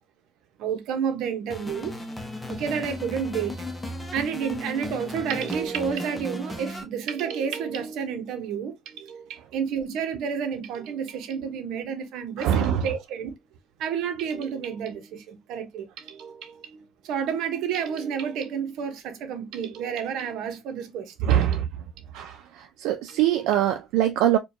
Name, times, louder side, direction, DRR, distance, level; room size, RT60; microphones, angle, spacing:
voice 1, 0.6-1.9 2.5-3.6 4.1-13.3 13.8-21.6 23.1-23.2, right 7 dB, 70° right, 0.8 m, -30 dB
sound 1, 1.5-6.8, left 1 dB, 10° left, 0.7 m, -36 dB
voice 2, 12.4-12.9 21.2-21.7 22.1-24.4, right 11 dB, 90° right, 0.4 m, -23 dB
4.4 x 2.2 x 2.7 m
cardioid pair, 140°, 0 cm